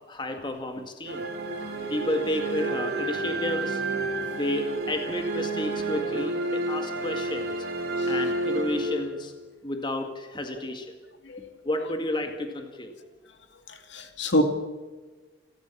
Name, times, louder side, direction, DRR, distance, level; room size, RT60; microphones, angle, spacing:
voice 1, 0.1-1.3 1.9-3.8 4.3-7.5 8.1-9.3 9.6-10.9 11.6-12.9, left 1 dB, 25° left, 5 dB, 1.9 m, -31 dB
sound 1, 1.0-9.4, right 2 dB, 55° right, 4.2 m, -30 dB
voice 2, 13.7-14.4, equal, 65° left, 7 dB, 2.3 m, -26 dB
29.5 x 13.0 x 7.2 m, 1.3 s
head